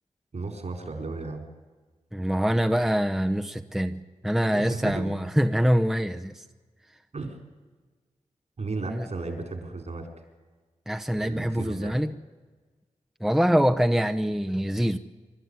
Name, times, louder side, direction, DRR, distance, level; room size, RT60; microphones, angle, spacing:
voice 1, 0.3-1.4 4.4-5.1 7.1-7.4 8.6-10.1 11.2-12.0, right 3 dB, 60° right, 5 dB, 4.3 m, -34 dB
voice 2, 2.1-6.4 8.9-9.1 10.9-12.1 13.2-15.0, equal, 5° right, 7 dB, 0.9 m, -24 dB
25.0 x 12.5 x 9.8 m, 1.4 s
cardioid pair, 55°, 13 cm